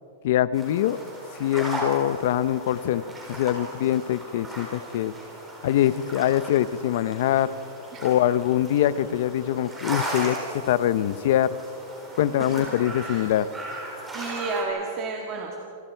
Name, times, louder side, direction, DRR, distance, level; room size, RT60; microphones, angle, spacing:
voice 1, 0.2-1.0 1.4-3.0 3.3-5.1 5.6-7.5 8.0-11.6 12.2-13.5, left 12 dB, 50° left, 16 dB, 0.7 m, -23 dB
sound 1, 0.5-14.6, right 1 dB, 10° right, 4.4 m, -37 dB
voice 2, 14.1-15.6, right 3 dB, 25° right, 0 dB, 1.8 m, -31 dB
27.5 x 27.0 x 4.6 m, 2.6 s
supercardioid pair, 175°, 0 cm